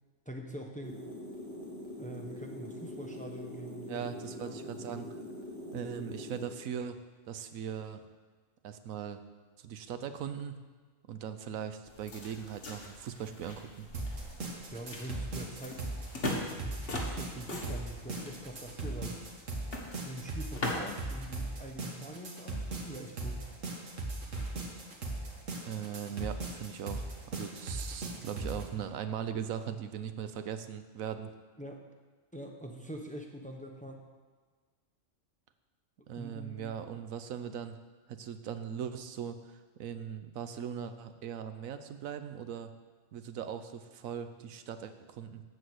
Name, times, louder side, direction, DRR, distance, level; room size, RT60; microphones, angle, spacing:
voice 1, 0.3-1.0 2.0-4.0 4.4-4.7 14.5-15.9 16.5-19.3 20.0-23.4 31.6-31.8 32.3-34.0 36.2-36.7, right 1 dB, 5° left, 2 dB, 0.8 m, -44 dB
sound 1, 0.8-6.5, left 1 dB, 40° right, 1.8 m, -43 dB
voice 2, 3.9-5.2 5.7-7.0 7.2-8.1 8.6-9.2 9.6-10.6 11.1-13.9 25.7-31.3 36.1-37.8 38.1-42.7 43.1-45.4, right 8 dB, 90° right, 10 dB, 1.1 m, -39 dB
sound 2, 11.9-21.1, left 2 dB, 45° left, 1.6 m, -41 dB
sound 3, 13.9-28.6, right 2 dB, 70° right, 1.9 m, -38 dB
12.5 x 4.7 x 8.0 m, 1.4 s
omnidirectional pair, 1.4 m